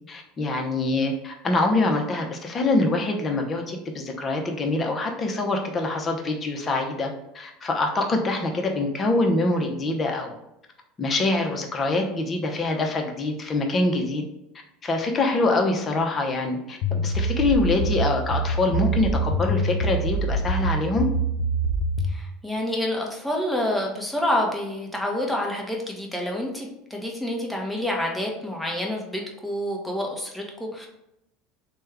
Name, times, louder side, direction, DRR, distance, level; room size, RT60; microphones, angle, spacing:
voice 1, 0.1-7.1 7.3-10.3 11.0-14.2 14.8-21.1, left 2 dB, 30° left, 2 dB, 0.7 m, -24 dB
sound 1, 16.8-22.2, right 1 dB, 70° left, 0.4 m, -25 dB
voice 2, 22.1-30.9, left 1 dB, ahead, -2 dB, 0.9 m, -28 dB
3.3 x 2.2 x 3.3 m, 0.86 s
hypercardioid pair, 85°, 0 cm